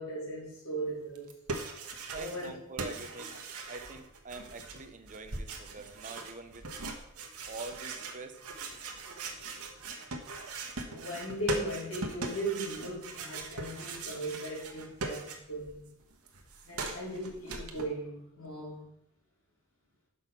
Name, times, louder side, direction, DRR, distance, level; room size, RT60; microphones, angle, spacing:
voice 1, 0.0-1.3 2.1-2.6 10.9-15.9 16.6-18.9, right 1 dB, 70° left, -3 dB, 2.8 m, -38 dB
sound 1, 1.1-2.5 2.8-15.7 16.0-17.8, right 3 dB, 75° right, 1.1 m, -40 dB
voice 2, 2.1-3.4 3.7-6.7 7.5-8.4, right 3 dB, 35° right, 7 dB, 0.7 m, -45 dB
6.3 x 5.4 x 5.7 m, 0.79 s
head